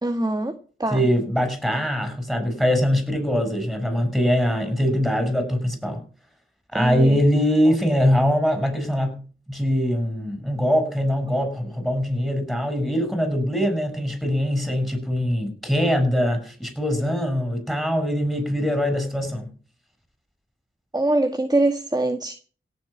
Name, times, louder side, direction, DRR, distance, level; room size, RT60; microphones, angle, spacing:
voice 1, 0.0-1.0 6.7-7.2 20.9-22.3, right 2 dB, 20° right, 7 dB, 1.8 m, -23 dB
voice 2, 0.9-6.0 6.7-9.2 9.5-19.5, equal, ahead, 8 dB, 7.4 m, -22 dB
17.5 x 8.0 x 7.4 m, 0.40 s
cardioid pair, 55°, 21 cm